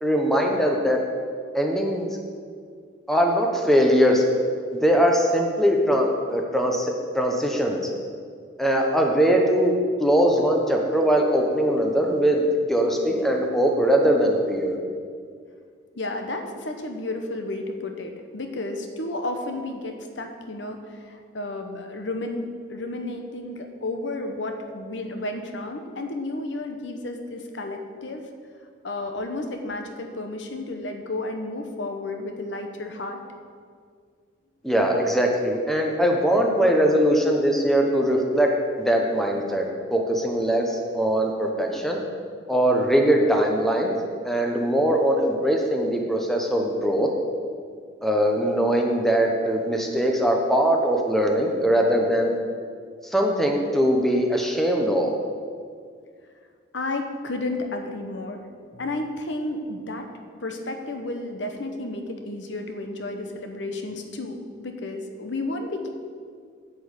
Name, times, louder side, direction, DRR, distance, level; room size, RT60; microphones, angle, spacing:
voice 1, 0.0-1.0 1.5-2.1 3.1-4.2 4.7-7.8 8.6-9.7 10.0-14.7 34.6-38.5 38.8-42.0 42.5-43.9 44.2-47.1 48.0-52.4 53.0-55.1, equal, ahead, 1 dB, 1.0 m, -21 dB
voice 2, 15.9-28.3 28.8-33.2 56.7-58.4 58.7-60.1 60.4-65.9, left 2 dB, 70° left, 5 dB, 1.0 m, -32 dB
10.5 x 5.5 x 8.1 m, 2.1 s
head